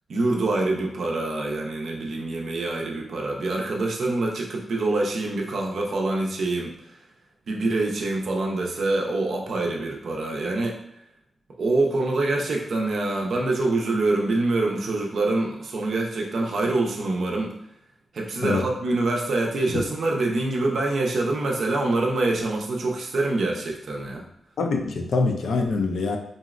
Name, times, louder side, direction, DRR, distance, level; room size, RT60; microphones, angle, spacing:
voice 1, 0.1-6.7 7.5-10.8 11.6-17.5 18.1-24.2, right 2 dB, 60° right, -1 dB, 0.5 m, -25 dB
voice 2, 24.6-26.2, left 3 dB, 75° left, 3 dB, 0.4 m, -24 dB
3.9 x 2.0 x 2.4 m, 0.77 s
wide cardioid pair, 160°, 0 cm